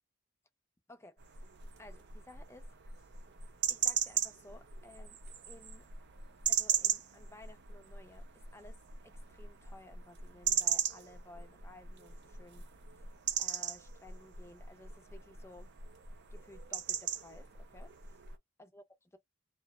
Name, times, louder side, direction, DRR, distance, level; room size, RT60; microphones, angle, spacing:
voice 1, 0.9-1.2 1.8-2.8 3.7-5.2 5.5-5.9 6.5-13.0 13.4-15.7 16.3-17.9 18.6-19.2, left 2 dB, 15° left, 0.5 m, -56 dB
sound 1, 1.2-18.3, right 8 dB, 60° right, 0.5 m, -38 dB
2.7 x 2.0 x 2.3 m
head